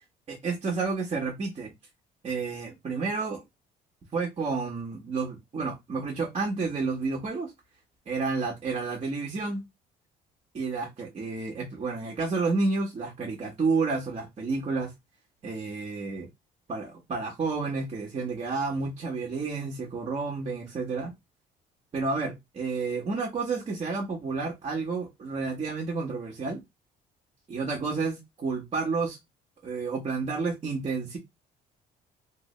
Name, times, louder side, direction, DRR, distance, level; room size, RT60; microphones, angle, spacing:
voice 1, 0.3-1.7 2.2-3.4 4.1-7.5 8.1-9.6 10.5-14.9 15.4-16.3 16.7-21.1 21.9-26.6 27.5-29.2 29.6-31.2, right 4 dB, 35° right, 1.3 m, -30 dB
3.2 x 2.7 x 3.2 m
cardioid pair, 110°, 17 cm